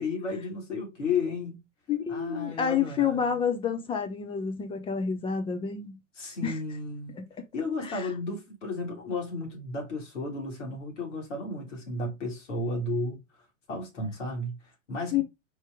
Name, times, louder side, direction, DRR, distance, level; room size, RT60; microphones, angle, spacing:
voice 1, 0.0-1.6 2.1-3.4 6.2-7.2 7.5-13.2 13.7-15.2, left 3 dB, 65° left, 2.2 m, -33 dB
voice 2, 1.9-6.0 6.4-6.6 7.2-7.4 7.8-8.1 15.1-15.2, left 7 dB, 15° left, 0.6 m, -29 dB
4.6 x 2.9 x 3.4 m
figure-of-eight pair, 100°, 39 cm